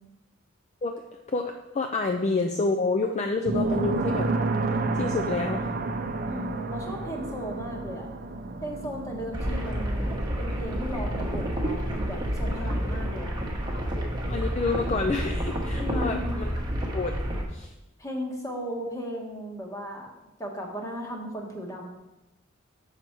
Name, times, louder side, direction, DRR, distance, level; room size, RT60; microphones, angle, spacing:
voice 1, 1.3-4.3 4.9-5.7 9.0-9.2 14.3-16.5 16.9-17.1 17.5-17.7, left 3 dB, 35° left, 4 dB, 0.4 m, -28 dB
sound 1, 3.5-14.0, right 3 dB, 45° right, 0.6 m, -32 dB
voice 2, 6.3-8.1 8.6-13.3 15.7-16.3 18.0-20.1 20.4-21.9, equal, 15° left, 1 dB, 1.2 m, -36 dB
sound 2, 9.3-17.4, equal, 20° right, 1.0 m, -29 dB
6.9 x 5.7 x 4.5 m, 0.98 s
head